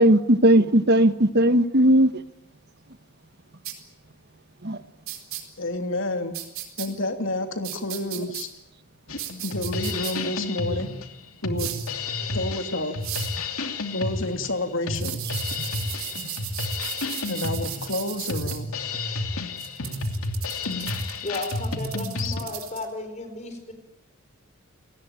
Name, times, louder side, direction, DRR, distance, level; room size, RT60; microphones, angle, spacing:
voice 1, 0.0-2.1 4.6-4.8 10.7-10.8, right 1 dB, 50° right, 12 dB, 1.4 m, -17 dB
sound 1, 3.6-3.7 5.1-5.4 6.3-6.9 7.6-8.4 9.2-10.1 11.6-11.9 13.0-13.3 14.9-18.6 19.6-22.8, right 13 dB, 70° right, 4.3 m, -35 dB
voice 2, 5.6-6.3 6.8-8.5 9.4-10.9 11.4-11.7 12.3-12.9 13.9-15.2 17.3-18.7 22.2-22.4, left 2 dB, 60° left, 6 dB, 3.1 m, -29 dB
Drum kit, 9.1-22.4, left 3 dB, 85° left, 2.7 m, -31 dB
voice 3, 21.2-23.7, left 2 dB, 30° left, 7 dB, 4.4 m, -34 dB
30.0 x 19.0 x 9.1 m, 0.86 s
head